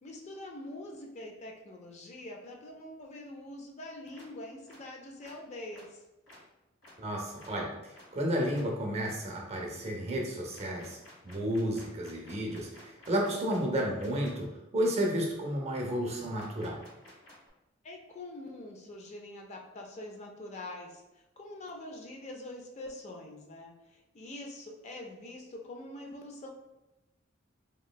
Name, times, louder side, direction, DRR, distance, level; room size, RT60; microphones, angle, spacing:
voice 1, 0.0-6.0 17.8-26.5, left 1 dB, 35° left, 1 dB, 0.3 m, -44 dB
sound 1, 4.1-4.2 4.7-4.8 5.2-5.3 5.7-5.8 6.3-6.4 6.8-6.9 7.4-7.5 7.9-8.1 8.5-8.6 10.5-14.3 16.3-17.5, left 1 dB, 80° left, 1.5 m, -54 dB
voice 2, 7.0-11.0 11.2-16.8, equal, 35° right, 0 dB, 0.5 m, -32 dB
2.9 x 2.5 x 2.2 m, 0.97 s
head